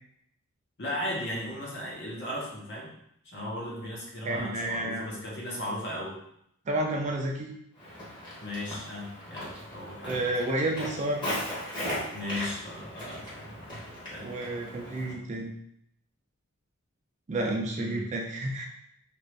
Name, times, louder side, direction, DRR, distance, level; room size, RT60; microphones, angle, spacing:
voice 1, 0.8-2.9 3.2-6.2 8.4-10.2 12.1-13.7 14.1-14.2 17.7-18.0, left 1 dB, 50° left, -5 dB, 1.0 m, -36 dB
voice 2, 4.2-5.1 6.7-7.5 10.0-11.2 14.2-15.5 17.3-18.7, right 1 dB, 30° right, 0 dB, 0.4 m, -30 dB
Walk footsteps, 7.8-15.1, equal, 20° left, 1.0 m, -38 dB
2.9 x 2.5 x 3.2 m, 0.75 s
head